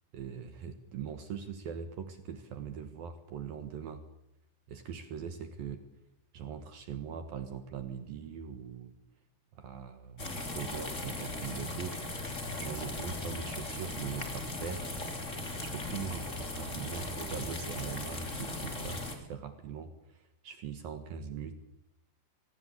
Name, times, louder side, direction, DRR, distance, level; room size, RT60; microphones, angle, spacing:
voice 1, 0.1-4.0 4.7-5.8 6.3-8.9 9.5-12.0 12.6-14.9 15.6-21.6, right 7 dB, 65° right, 8 dB, 2.6 m, -41 dB
sound 1, 10.2-19.1, left 2 dB, 20° left, 2.7 m, -38 dB
25.5 x 19.0 x 8.6 m, 0.81 s
omnidirectional pair, 5.6 m